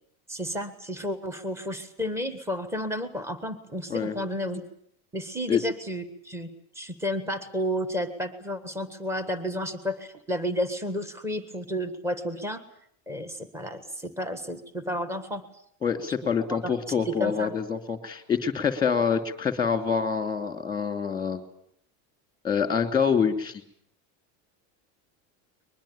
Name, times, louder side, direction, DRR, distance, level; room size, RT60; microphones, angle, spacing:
voice 1, 0.3-4.6 5.1-6.5 6.7-12.6 13.1-15.4 16.5-16.7 17.0-17.5, equal, 5° right, 8 dB, 1.5 m, -32 dB
voice 2, 15.8-21.4 22.4-23.6, left 6 dB, 10° left, 7 dB, 2.8 m, -26 dB
22.0 x 22.0 x 8.8 m, 0.67 s
supercardioid pair, 145°, 42 cm